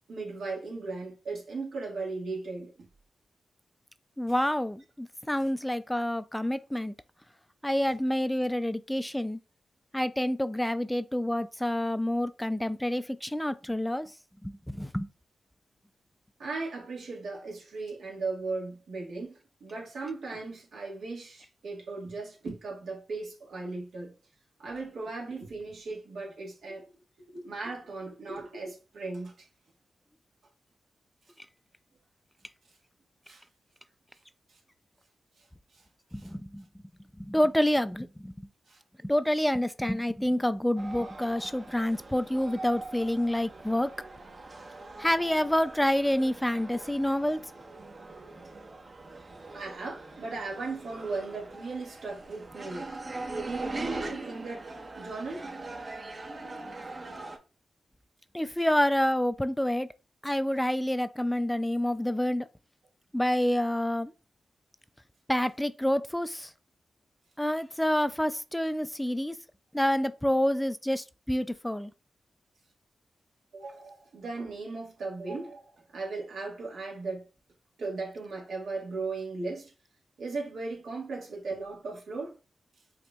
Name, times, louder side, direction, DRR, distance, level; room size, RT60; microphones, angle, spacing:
voice 1, 0.1-2.9 16.4-19.3 19.6-24.1 24.6-27.0 27.3-29.5 33.3-33.4 35.7-35.8 36.1-36.3 38.7-38.8 49.5-52.9 53.3-55.5 73.5-77.2 77.8-79.7 80.2-82.4, right 3 dB, 80° right, 1.5 m, -37 dB
voice 2, 4.2-6.9 7.6-9.4 9.9-14.1 14.4-15.1 36.1-36.6 37.2-38.5 39.0-43.9 45.0-47.4 58.3-59.9 60.2-62.5 63.1-64.1 65.3-66.5 67.4-69.4 69.7-71.9, left 1 dB, 10° left, 0.3 m, -28 dB
sound 1, 40.8-57.4, right 2 dB, 50° right, 0.9 m, -42 dB
4.9 x 2.8 x 2.3 m
supercardioid pair, 45°, 0 cm